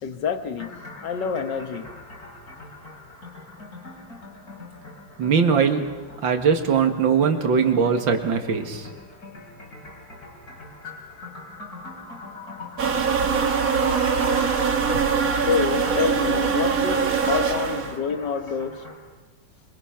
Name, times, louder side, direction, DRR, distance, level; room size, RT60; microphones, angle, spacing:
voice 1, 0.0-2.0 15.3-18.8, left 6 dB, 70° left, 1.8 m, -27 dB
sound 1, 0.6-19.0, left 2 dB, 50° left, 5.3 m, -41 dB
voice 2, 5.2-5.8 6.2-8.9, right 6 dB, 80° right, 2.5 m, -20 dB
sound 2, 12.8-18.0, right 5 dB, 50° right, 1.8 m, -22 dB
25.0 x 23.5 x 5.8 m
omnidirectional pair, 2.0 m